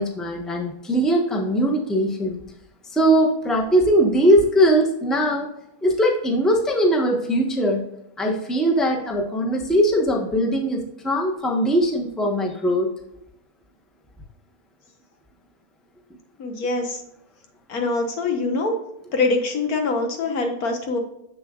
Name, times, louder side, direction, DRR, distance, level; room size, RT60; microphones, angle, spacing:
voice 1, 0.0-2.4 2.9-5.5 5.8-7.8 8.2-12.9, equal, ahead, 0 dB, 0.8 m, -20 dB
voice 2, 16.4-17.0 17.7-18.7 19.1-21.0, left 3 dB, 85° left, 3 dB, 1.7 m, -24 dB
6.9 x 6.7 x 2.4 m, 0.81 s
omnidirectional pair, 1.5 m